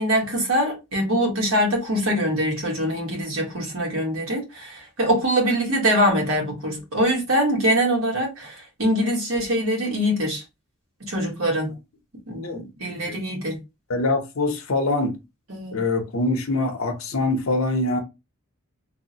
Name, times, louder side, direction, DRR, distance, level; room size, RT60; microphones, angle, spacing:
voice 1, 0.0-10.4 11.0-11.8 12.3-13.6 15.5-15.8, equal, 75° right, 1.3 m, -23 dB
voice 2, 12.9-13.2 13.9-15.1 15.7-18.0, left 2 dB, 70° left, 0.7 m, -24 dB
3.4 x 2.1 x 2.8 m
head